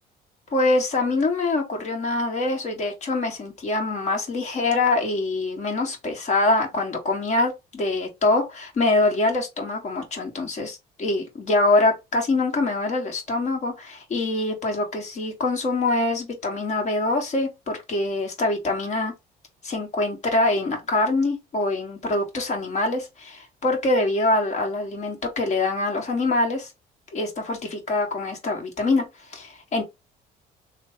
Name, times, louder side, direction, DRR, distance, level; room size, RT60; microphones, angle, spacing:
voice 1, 0.5-19.1 19.6-26.7 27.1-29.0 29.3-29.8, left 2 dB, 45° left, 1.6 m, -24 dB
3.2 x 2.3 x 4.1 m
cardioid pair, 110°, 17 cm